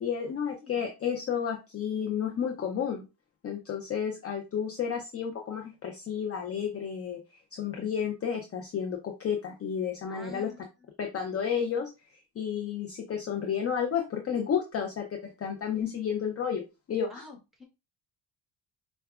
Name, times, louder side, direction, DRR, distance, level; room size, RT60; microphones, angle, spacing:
voice 1, 0.0-3.1 3.4-7.2 7.5-10.5 11.0-16.6 16.9-17.3, left 7 dB, 35° left, 2 dB, 0.5 m, -31 dB
voice 2, 10.1-10.6 17.1-17.6, left 3 dB, ahead, 0 dB, 1.2 m, -47 dB
4.5 x 2.3 x 2.3 m, 0.26 s
cardioid pair, 115°, 43 cm